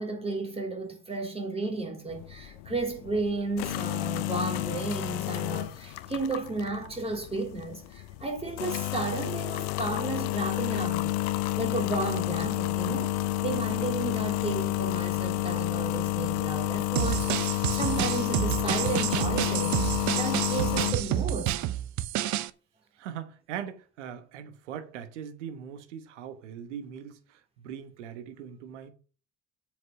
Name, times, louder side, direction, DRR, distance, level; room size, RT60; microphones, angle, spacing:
voice 1, 0.0-13.2 13.4-21.6, right 3 dB, 15° right, 3.7 m, -33 dB
sound 1, 2.1-21.2, left 16 dB, 70° left, 0.8 m, -30 dB
sound 2, 17.0-22.5, right 14 dB, 55° right, 0.7 m, -29 dB
voice 2, 22.9-28.9, right 9 dB, 80° right, 1.2 m, -41 dB
7.6 x 5.4 x 7.2 m
hypercardioid pair, 60°, 35 cm